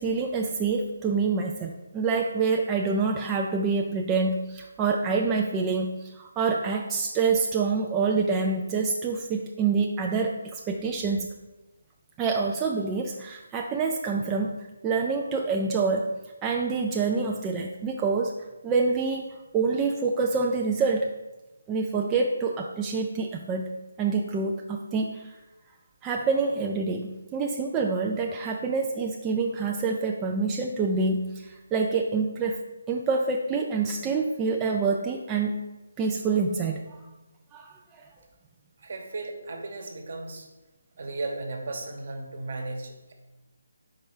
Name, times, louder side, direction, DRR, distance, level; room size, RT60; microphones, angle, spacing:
voice 1, 0.0-11.3 12.2-16.1 16.4-18.3 18.6-21.1 21.7-25.3 26.0-32.6 32.9-35.6 36.0-37.0 37.5-38.1, right 4 dB, 15° right, 0 dB, 0.3 m, -27 dB
voice 2, 38.8-40.5 41.0-43.1, right 2 dB, 55° right, 3 dB, 1.1 m, -35 dB
4.7 x 4.2 x 4.8 m, 1.1 s
figure-of-eight pair, 160°, 0 cm